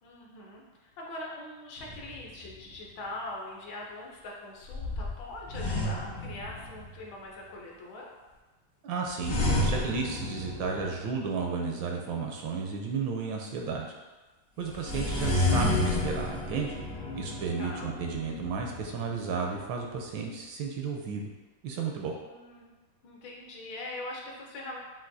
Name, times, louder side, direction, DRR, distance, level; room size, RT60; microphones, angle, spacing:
voice 1, 0.0-8.1 17.0-17.9 22.2-22.7 23.0-24.8, left 2 dB, 70° left, -2 dB, 1.4 m, -42 dB
sound 1, 1.8-2.7 4.7-7.0 9.2-11.3 14.7-19.4, left 1 dB, 90° left, 0.5 m, -31 dB
voice 2, 8.8-13.9 14.6-16.8 17.1-21.3 21.6-22.2, right 5 dB, 75° right, 1 dB, 1.2 m, -33 dB
7.2 x 2.5 x 2.6 m, 1.2 s
omnidirectional pair, 2.3 m